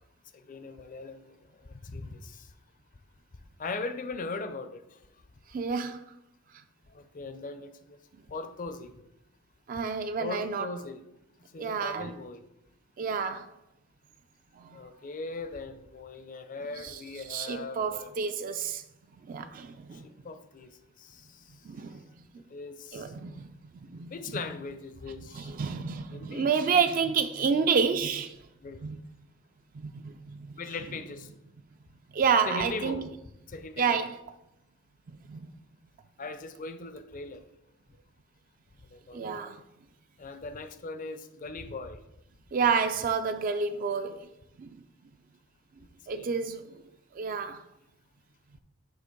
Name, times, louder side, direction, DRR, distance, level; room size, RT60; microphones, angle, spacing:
voice 1, 0.5-1.3 1.7-2.4 3.6-4.8 6.9-8.0 8.3-8.9 10.2-11.0 11.5-12.4 14.7-18.1 20.0-20.7 21.0-21.4 22.5-23.1 24.1-25.5 26.1-26.5 28.6-28.8 30.6-31.3 32.5-33.1 33.5-34.1 36.2-37.4 38.9-39.3 40.2-42.0 46.1-46.3, left 3 dB, 40° left, 0.5 m, -39 dB
voice 2, 5.5-6.0 9.7-10.7 11.6-12.1 13.0-13.5 14.6-14.8 16.8-17.0 17.3-18.8 19.3-20.1 21.7-22.0 22.9-23.5 23.9-24.1 25.3-28.3 28.8-29.0 29.7-30.5 32.1-33.0 33.8-34.2 35.3-35.5 39.1-39.6 42.5-44.3 44.6-44.7 46.1-46.8 47.1-47.6, right 6 dB, 40° right, 0.3 m, -29 dB
7.8 x 2.9 x 5.2 m
head